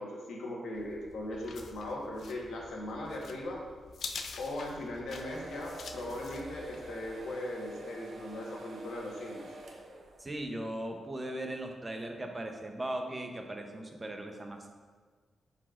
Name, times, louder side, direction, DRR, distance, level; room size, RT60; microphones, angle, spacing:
voice 1, 0.0-3.6 4.4-9.4, left 1 dB, 85° left, -2 dB, 1.2 m, -39 dB
sound 1, 0.7-7.0, left 4 dB, 65° left, 0.4 m, -46 dB
sound 2, 5.1-10.6, right 2 dB, 65° right, 0.9 m, -48 dB
voice 2, 10.2-14.7, right 1 dB, 20° right, 3 dB, 0.7 m, -38 dB
10.0 x 4.1 x 2.5 m, 1.5 s
cardioid pair, 100°, 0 cm